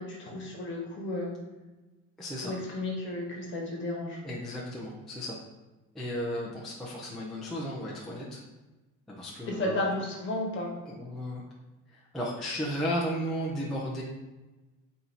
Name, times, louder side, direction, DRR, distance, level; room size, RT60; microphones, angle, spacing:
voice 1, 0.0-1.3 2.4-4.2 9.4-10.7, left 2 dB, 40° left, -2 dB, 1.1 m, -33 dB
voice 2, 2.2-2.5 4.2-5.4 5.9-8.4 9.1-9.8 10.9-11.4 11.9-14.0, equal, ahead, -6 dB, 0.4 m, -34 dB
4.4 x 2.7 x 3.9 m, 1.1 s
cardioid pair, 170°, 31 cm